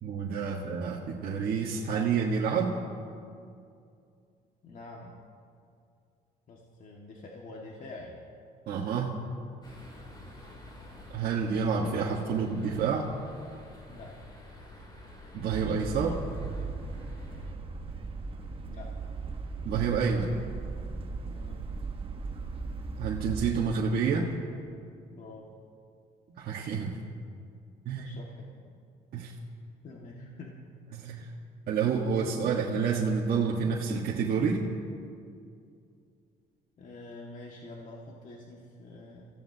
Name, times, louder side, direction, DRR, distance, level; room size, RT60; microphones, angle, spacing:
voice 1, 0.0-2.7 8.7-9.2 11.1-13.1 15.3-16.2 19.6-20.3 23.0-24.3 26.4-27.0 27.8-28.1 29.1-29.3 30.9-31.2 31.7-34.6, right 6 dB, 65° right, -4 dB, 1.6 m, -28 dB
voice 2, 4.6-5.2 6.5-8.2 13.9-14.2 18.6-19.0 21.2-21.7 25.1-25.5 27.9-28.5 29.8-30.6 31.2-31.3 36.8-39.3, left 2 dB, 50° left, -2 dB, 2.0 m, -46 dB
sound 1, 9.6-17.5, left 1 dB, 25° left, 3.3 m, -49 dB
sound 2, 15.5-23.5, right 3 dB, 35° right, 1.3 m, -37 dB
27.5 x 16.0 x 2.9 m, 2.4 s
cardioid pair, 110°, 17 cm